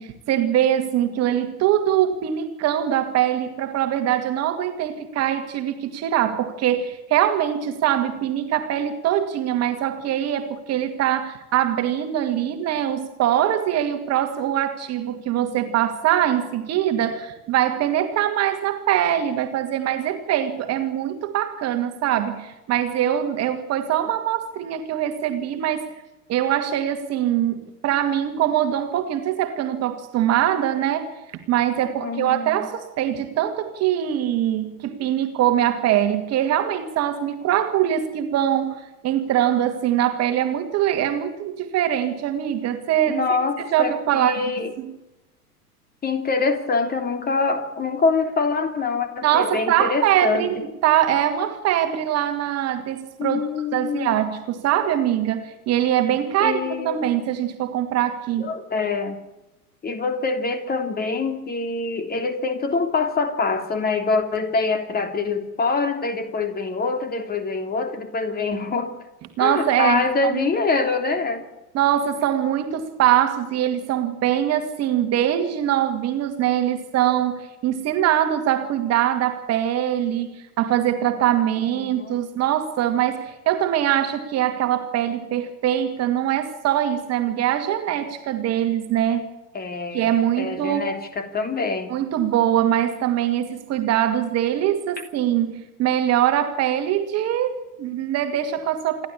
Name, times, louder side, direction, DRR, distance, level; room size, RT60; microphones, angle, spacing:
voice 1, 0.0-25.9 26.3-31.1 31.5-43.3 43.6-44.5 44.8-44.9 49.2-58.5 69.4-70.5 71.7-89.3 89.9-90.9 91.9-99.1, right 11 dB, 30° right, 2.3 m, -23 dB
voice 2, 32.0-32.6 43.1-44.7 46.0-50.6 53.2-54.1 56.4-57.1 58.4-59.2 59.8-68.9 69.4-71.4 81.8-82.2 89.5-90.1 90.4-92.0, left 4 dB, 20° left, 3.1 m, -25 dB
28.0 x 12.0 x 8.6 m
figure-of-eight pair, 90°, 47 cm